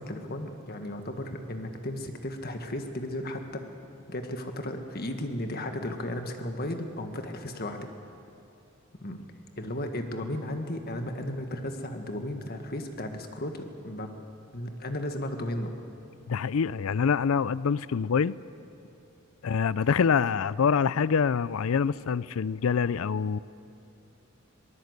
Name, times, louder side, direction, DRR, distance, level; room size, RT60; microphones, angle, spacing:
voice 1, 0.0-3.6 4.1-7.9 9.0-9.2 9.6-14.2 14.5-15.7, left 1 dB, 50° left, 5 dB, 1.6 m, -35 dB
voice 2, 16.3-18.3 19.4-23.4, left 6 dB, 75° left, 19 dB, 0.4 m, -25 dB
22.0 x 20.0 x 8.1 m, 2.8 s
head